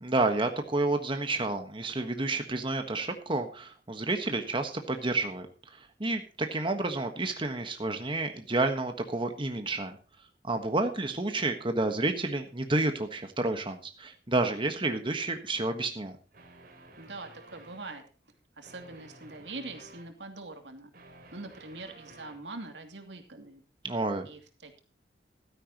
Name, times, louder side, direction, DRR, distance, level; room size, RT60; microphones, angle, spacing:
voice 1, 0.0-5.5 5.7-10.0 10.4-16.2 23.8-24.3, right 2 dB, 30° right, 6 dB, 1.4 m, -30 dB
sound 1, 16.3-18.0 18.6-20.1 20.7-22.5, right 2 dB, 55° right, 3.4 m, -53 dB
voice 2, 17.0-18.0 18.6-20.9 21.3-23.6 24.2-24.8, right 2 dB, 90° right, 5 dB, 2.7 m, -43 dB
15.0 x 13.0 x 3.0 m, 0.35 s
head